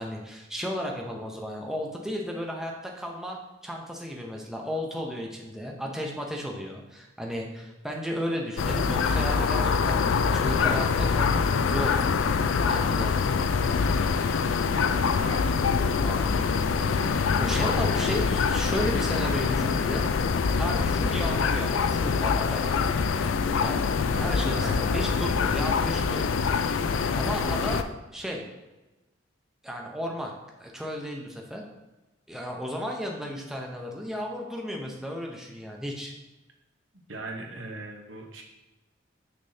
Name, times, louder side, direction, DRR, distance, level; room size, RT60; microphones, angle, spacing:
voice 1, 0.0-3.4 3.6-11.9 12.7-13.2 16.0-16.9 17.4-20.1 20.6-22.8 23.6-26.5 27.2-27.8 28.1-28.4 29.6-30.3 30.6-31.6 32.3-36.1, equal, 5° right, 0 dB, 0.7 m, -34 dB
sound 1, 8.6-27.8, left 5 dB, 90° left, 0.4 m, -25 dB
voice 2, 14.7-15.6 15.9-16.5 24.1-25.0 37.1-38.4, right 2 dB, 85° right, 1 dB, 1.1 m, -40 dB
6.3 x 6.0 x 2.8 m, 1.1 s
head